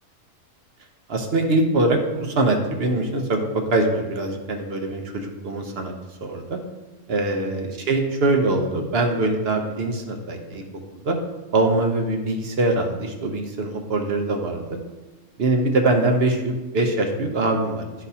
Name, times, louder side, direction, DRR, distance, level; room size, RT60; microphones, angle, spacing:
voice 1, 1.1-5.9 6.2-6.6 7.1-10.6 10.9-11.2 11.5-14.8 15.4-18.1, right 2 dB, 55° right, 3 dB, 0.8 m, -23 dB
11.0 x 4.1 x 2.7 m, 1.1 s
omnidirectional pair, 1.5 m